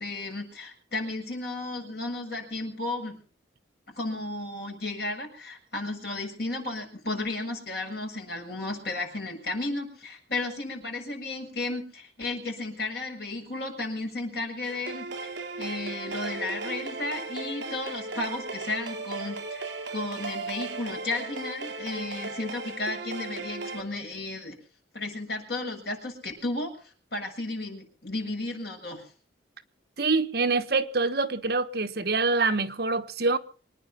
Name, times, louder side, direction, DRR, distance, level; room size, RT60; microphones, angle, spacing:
voice 1, 0.0-3.2 3.9-15.3 15.6-19.6 19.9-24.6 24.9-29.1, left 2 dB, 55° left, 7.0 m, -34 dB
sound 1, 14.6-23.8, right 3 dB, 70° right, 3.6 m, -36 dB
voice 2, 30.0-33.4, right 3 dB, 55° right, 1.2 m, -25 dB
25.0 x 10.0 x 5.7 m
head